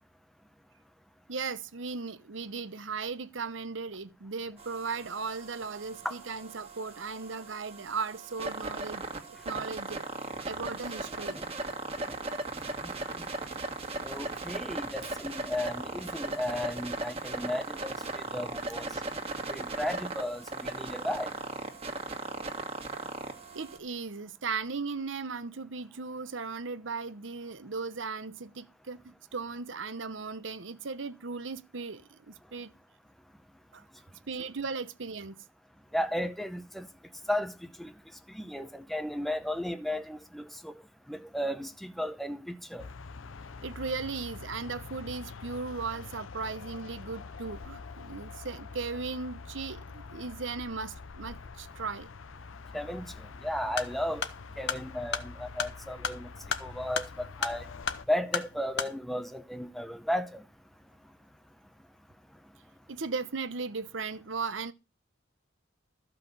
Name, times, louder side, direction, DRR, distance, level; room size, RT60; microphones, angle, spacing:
voice 1, 1.3-11.4 23.5-32.7 33.7-33.8 34.3-35.4 43.6-52.1 62.9-64.7, right 4 dB, 70° right, 0.9 m, -37 dB
sound 1, 4.6-23.8, right 2 dB, 30° right, 1.9 m, -38 dB
voice 2, 12.8-13.3 14.0-19.0 19.5-21.3 35.9-36.9 37.3-37.9 38.3-40.7 41.1-42.9 52.7-54.3 54.6-56.3 56.6-57.7 58.1-60.4, left 1 dB, ahead, 0.7 m, -34 dB
sound 2, 42.8-58.1, left 4 dB, 85° left, 0.6 m, -45 dB
sound 3, 53.6-59.0, left 6 dB, 60° left, 1.3 m, -35 dB
14.0 x 5.8 x 6.8 m
head